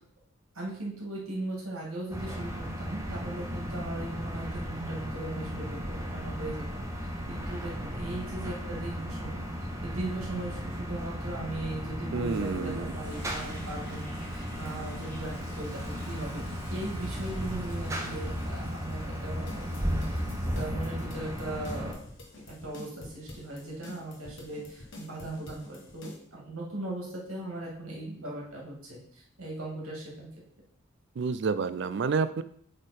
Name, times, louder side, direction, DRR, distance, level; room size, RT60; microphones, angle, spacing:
voice 1, 0.5-6.6 7.0-9.5 9.8-16.4 16.7-20.2 20.5-22.0 22.5-30.3, right 2 dB, 85° right, -3 dB, 2.3 m, -38 dB
sound 1, 2.1-21.9, equal, 15° right, 0.7 m, -35 dB
voice 2, 12.1-12.9 31.2-32.4, right 5 dB, 55° right, 14 dB, 0.3 m, -29 dB
Toilet flush, 12.2-24.6 25.1-25.2, left 1 dB, 10° left, 1.5 m, -51 dB
sound 2, 19.5-26.2, left 2 dB, 55° left, 1.1 m, -47 dB
7.9 x 3.7 x 4.3 m, 0.65 s
head